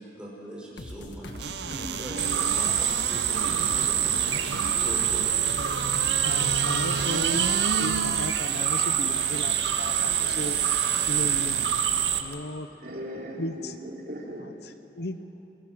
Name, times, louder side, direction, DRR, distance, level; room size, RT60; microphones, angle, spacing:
voice 1, 0.0-5.5, equal, 5° right, -3 dB, 5.1 m, -41 dB
sound 1, 0.8-8.3, left 1 dB, 85° left, 1.5 m, -42 dB
sound 2, 1.4-11.9 12.3-12.4, right 5 dB, 70° right, 0.8 m, -34 dB
sound 3, 2.2-12.2, right 9 dB, 85° right, 1.6 m, -26 dB
voice 2, 6.2-7.5 7.8-10.6 11.0-11.8 12.2-12.7 13.4-13.7 14.4-15.2, left 1 dB, 60° left, 10 dB, 0.9 m, -35 dB
voice 3, 10.2-10.6 12.8-14.5, right 1 dB, 55° right, -1 dB, 3.4 m, -39 dB
29.0 x 21.5 x 6.3 m, 2.8 s
head